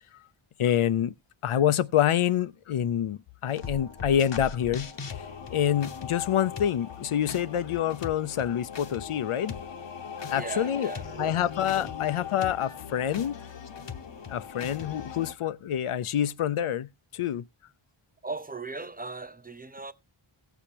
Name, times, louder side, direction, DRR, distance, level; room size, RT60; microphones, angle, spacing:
voice 1, 0.6-1.1 1.4-4.9 5.5-9.6 10.3-10.9 11.2-13.4 14.3-17.5, left 10 dB, 85° left, 0.6 m, -27 dB
sound 1, 3.5-15.3, left 6 dB, 60° left, 0.9 m, -39 dB
voice 2, 10.3-11.3 11.8-11.9 18.2-19.9, right 3 dB, 20° right, 0.5 m, -38 dB
17.0 x 7.0 x 2.8 m
wide cardioid pair, 80°, 49 cm